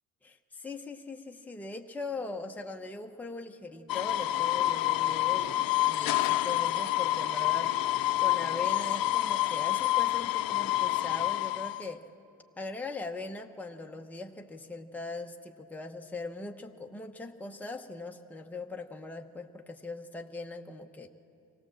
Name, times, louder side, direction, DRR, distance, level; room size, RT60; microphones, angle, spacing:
voice 1, 0.2-7.8 8.2-12.0 12.6-21.1, left 3 dB, 5° left, 3 dB, 0.9 m, -40 dB
sound 1, 3.9-11.8, left 14 dB, 65° left, 0.6 m, -28 dB
24.5 x 17.0 x 7.5 m, 2.8 s
cardioid pair, 80°, 39 cm